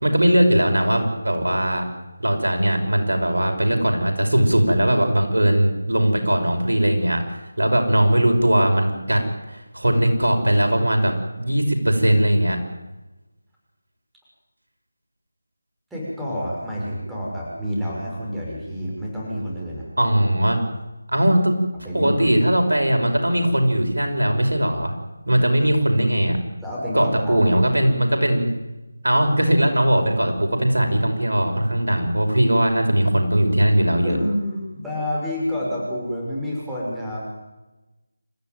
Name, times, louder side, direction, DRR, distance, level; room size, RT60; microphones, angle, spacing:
voice 1, 0.0-1.8 2.2-9.2 9.5-12.6 20.0-20.6 21.1-21.6 21.9-24.9 25.3-26.4 26.9-28.5 29.0-34.2, right 1 dB, 80° right, 4 dB, 5.7 m, -19 dB
voice 2, 15.9-19.9 21.8-22.6 26.6-27.6 34.0-37.2, equal, 5° right, -6 dB, 6.1 m, -28 dB
28.0 x 14.5 x 9.3 m, 1.0 s
figure-of-eight pair, 160°, 0 cm